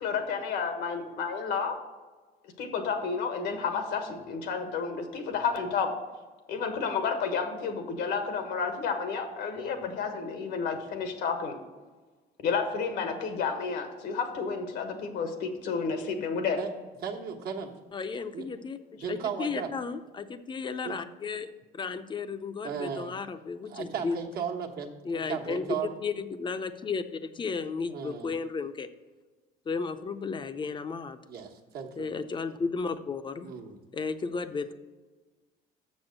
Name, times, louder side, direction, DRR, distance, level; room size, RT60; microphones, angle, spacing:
voice 1, 0.0-1.7 2.6-5.9 6.5-11.5 12.4-16.6, left 5 dB, 80° left, 6 dB, 1.4 m, -31 dB
voice 2, 17.0-17.7 18.3-18.4 19.0-19.7 20.8-21.0 22.6-23.1 23.7-25.9 27.9-28.3 31.3-32.1 33.4-33.8, right 7 dB, 65° right, 1 dB, 1.2 m, -35 dB
voice 3, 17.9-24.2 25.0-28.9 29.7-31.2 32.0-33.5 33.9-34.8, left 4 dB, 30° left, 11 dB, 0.6 m, -34 dB
6.8 x 6.2 x 6.5 m, 1.3 s
cardioid pair, 110°, 17 cm